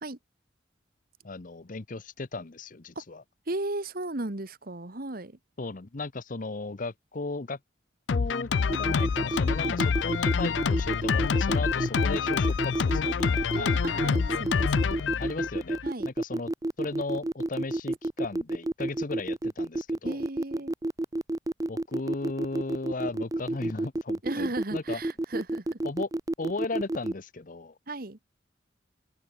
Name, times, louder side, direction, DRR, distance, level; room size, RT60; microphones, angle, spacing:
voice 1, 1.2-3.2 5.6-7.6 8.1-8.5 8.8-13.8 15.2-15.8 16.0-16.5 16.8-20.2 21.7-25.0 25.8-26.1 26.4-27.8, left 3 dB, 45° left, 0.9 m, -36 dB
voice 2, 3.5-5.4 9.6-9.8 13.5-15.2 15.8-16.1 20.0-20.7 24.2-25.8 27.9-28.2, right 2 dB, 50° right, 1.8 m, -36 dB
Drum kit, 8.1-15.9, left 5 dB, 80° left, 0.5 m, -27 dB
sound 1, 8.7-27.1, right 1 dB, 20° right, 0.5 m, -30 dB
head